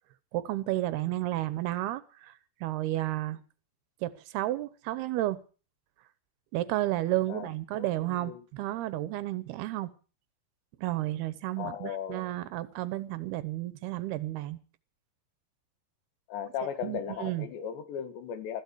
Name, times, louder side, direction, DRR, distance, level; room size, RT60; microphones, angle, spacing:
voice 1, 0.3-2.3 2.6-3.4 4.0-5.4 6.5-9.9 10.8-14.6 16.8-17.5, right 15 dB, 75° right, 2.7 m, -32 dB
voice 2, 7.8-8.4 11.6-12.2 16.3-18.6, left 8 dB, 85° left, 4.1 m, -37 dB
20.0 x 15.0 x 4.6 m
omnidirectional pair, 4.9 m